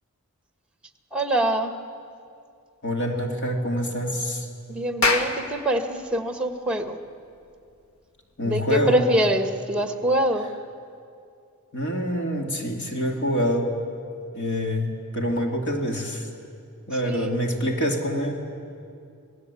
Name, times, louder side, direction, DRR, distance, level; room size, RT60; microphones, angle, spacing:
voice 1, 1.1-1.7 4.7-7.0 8.4-10.4 17.0-17.3, right 1 dB, 5° right, 5 dB, 1.6 m, -24 dB
voice 2, 2.8-4.5 8.4-9.1 11.7-13.7 14.3-16.2 16.9-18.3, equal, 55° left, 1 dB, 2.9 m, -26 dB
Clapping, 4.8-9.7, left 3 dB, 70° left, 1.9 m, -30 dB
28.5 x 18.5 x 8.5 m, 2.5 s
head